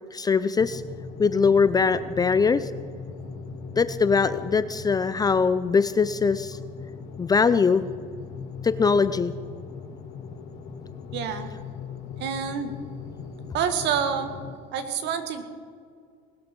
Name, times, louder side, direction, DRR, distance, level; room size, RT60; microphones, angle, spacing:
voice 1, 0.1-0.8 1.2-2.7 3.8-6.6 7.2-7.8 8.6-9.3, left 5 dB, 20° left, 13 dB, 0.5 m, -21 dB
sound 1, 0.5-14.5, left 5 dB, 75° left, 3.6 m, -39 dB
voice 2, 11.1-11.5 12.2-12.7 13.5-14.3 14.7-15.4, right 7 dB, 60° right, 8 dB, 1.8 m, -27 dB
20.0 x 13.0 x 5.3 m, 2.1 s
supercardioid pair, 115°, 20 cm